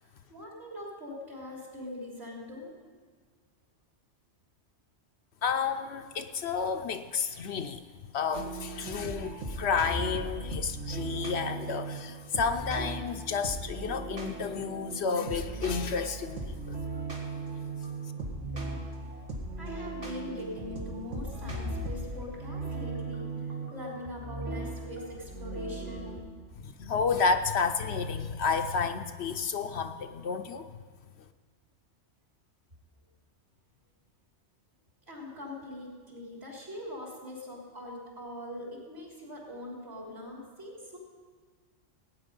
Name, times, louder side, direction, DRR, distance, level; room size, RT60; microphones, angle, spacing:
voice 1, 0.0-2.7 19.6-26.2 35.1-41.0, left 1 dB, 55° right, -3 dB, 3.6 m, -42 dB
voice 2, 5.4-7.8 8.1-16.8 26.6-30.7, left 5 dB, 65° left, 8 dB, 0.9 m, -31 dB
sound 1, 8.3-26.2, right 2 dB, 80° right, 2.2 m, -37 dB
17.5 x 9.2 x 5.3 m, 1.5 s
omnidirectional pair, 1.2 m